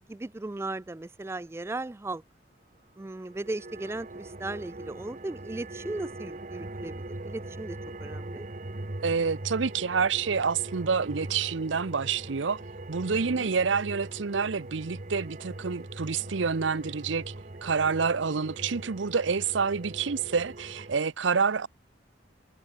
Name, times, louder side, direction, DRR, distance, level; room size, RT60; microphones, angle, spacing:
voice 1, 0.1-2.2 3.0-8.5 13.1-13.5, right 2 dB, 15° right, 0.3 m, -37 dB
sound 1, 3.1-21.0, right 2 dB, 40° right, 1.2 m, -41 dB
voice 2, 9.0-12.6 12.9-17.3 17.6-21.7, right 5 dB, 75° right, 0.7 m, -28 dB
head